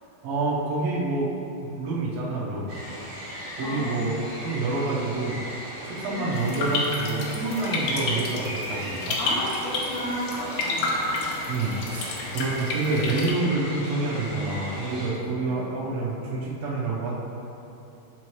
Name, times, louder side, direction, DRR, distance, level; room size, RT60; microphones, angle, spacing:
voice 1, 0.2-1.3 1.6-2.7 3.5-5.4 5.8-9.2 11.5-17.2, right 3 dB, 80° right, -6 dB, 1.4 m, -28 dB
sound 1, 2.7-15.1, equal, 45° right, 1.7 m, -37 dB
sound 2, 6.3-13.3, left 3 dB, 90° left, 1.8 m, -30 dB
voice 2, 9.2-11.3 15.4-15.6, equal, 65° left, -8 dB, 2.4 m, -32 dB
6.8 x 4.6 x 3.1 m, 2.9 s
omnidirectional pair, 4.3 m